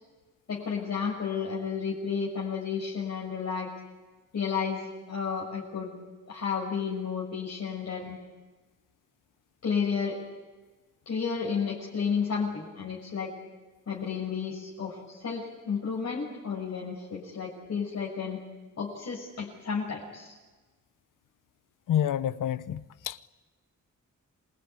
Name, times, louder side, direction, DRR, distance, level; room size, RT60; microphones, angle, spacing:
voice 1, 0.5-3.7 4.3-4.8 5.1-5.9 6.3-8.2 9.6-10.2 11.1-13.3 13.9-18.4 18.8-20.4, left 6 dB, 55° left, 6.4 m, -32 dB
voice 2, 21.9-23.3, left 10 dB, 85° left, 1.0 m, -29 dB
27.5 x 21.0 x 9.6 m
cardioid pair, 105°, 31 cm